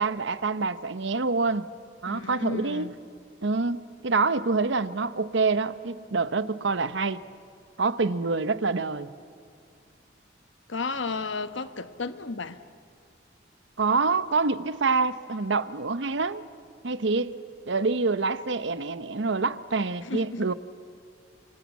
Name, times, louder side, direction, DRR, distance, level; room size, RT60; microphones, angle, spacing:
voice 1, 0.0-1.7 2.0-2.9 3.4-7.2 7.8-9.1 13.8-16.4 16.8-17.4 17.7-20.5, right 4 dB, 70° right, 0.8 m, -26 dB
voice 2, 2.1-2.9 10.7-12.6 20.0-20.5, left 3 dB, 80° left, 1.1 m, -33 dB
26.5 x 24.0 x 8.3 m
head